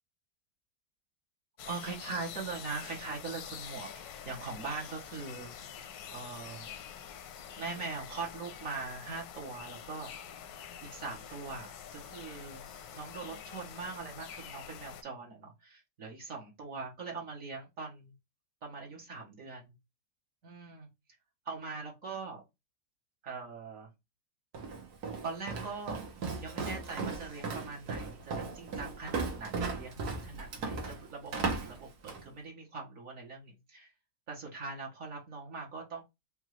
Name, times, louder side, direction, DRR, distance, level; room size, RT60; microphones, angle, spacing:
sound 1, 1.6-15.0, left 8 dB, 80° left, 1.2 m, -46 dB
voice 1, 1.6-3.9 4.2-5.5 6.1-6.7 7.6-10.1 10.9-12.7 12.9-18.1 18.6-19.7 20.4-20.9 21.4-22.4 23.2-23.9 25.2-26.0 26.4-31.3 31.6-33.9 34.3-36.0, right 4 dB, 60° right, -1 dB, 1.4 m, -41 dB
Walk footsteps, 24.5-32.3, right 4 dB, 90° right, 1.6 m, -37 dB
5.2 x 2.3 x 3.1 m, 0.22 s
omnidirectional pair, 1.6 m